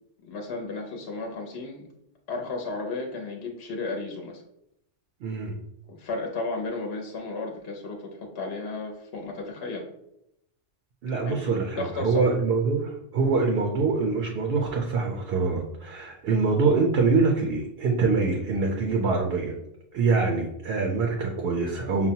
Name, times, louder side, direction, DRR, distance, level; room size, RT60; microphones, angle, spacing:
voice 1, 0.2-1.9 2.3-4.4 5.9-9.9 11.2-11.4 11.7-12.3, left 3 dB, 65° left, 1 dB, 0.8 m, -33 dB
voice 2, 5.2-5.5 11.0-19.6 19.9-22.1, right 4 dB, 65° right, 2 dB, 0.7 m, -24 dB
5.4 x 2.1 x 2.7 m, 0.80 s
omnidirectional pair, 1.2 m